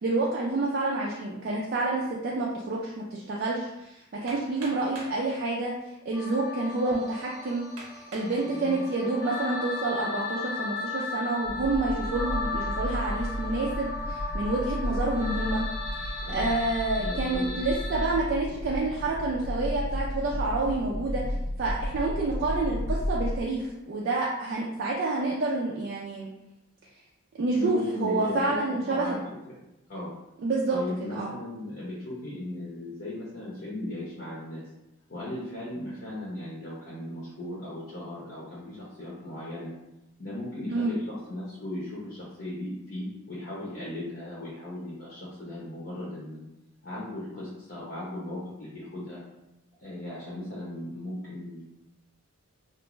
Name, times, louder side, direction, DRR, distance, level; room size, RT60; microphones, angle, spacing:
voice 1, 0.0-5.7 6.1-7.7 7.9-15.6 16.0-21.2 21.6-26.3 27.4-29.2 30.4-30.8 31.1-31.3 40.7-40.9, right 2 dB, 45° right, -4 dB, 0.3 m, -28 dB
Hammer, 4.3-5.2 6.1-6.2 6.8-6.9 7.8-8.4 9.0-9.4, right 1 dB, 85° right, 0.6 m, -44 dB
sound 1, 6.1-18.1, left 3 dB, 5° right, 0.7 m, -36 dB
voice 2, 8.4-8.8 16.2-16.6 17.0-17.5 27.5-29.2 29.5-29.6 29.9-30.1 30.7-34.6 35.1-39.7 40.2-46.4 46.8-49.2 49.8-51.6, left 1 dB, 45° left, -7 dB, 0.7 m, -37 dB
sound 2, 11.4-23.4, left 1 dB, 75° left, 0.4 m, -33 dB
2.4 x 2.2 x 3.0 m, 0.90 s
head